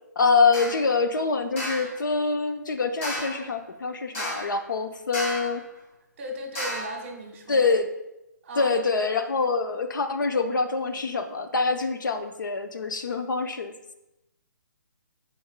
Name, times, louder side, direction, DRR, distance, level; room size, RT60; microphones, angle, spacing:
voice 1, 0.2-5.6 7.5-7.9 8.6-13.9, left 4 dB, 75° left, 7 dB, 0.7 m, -25 dB
sound 1, 0.5-0.8 1.6-1.9 3.0-3.5 4.1-4.6 5.1-5.6 6.5-7.0, equal, 40° left, 2.4 m, -32 dB
voice 2, 6.2-7.7 8.4-9.2, right 1 dB, 40° right, 3 dB, 1.2 m, -37 dB
12.0 x 4.6 x 2.2 m, 0.91 s
hypercardioid pair, 165°, 10 cm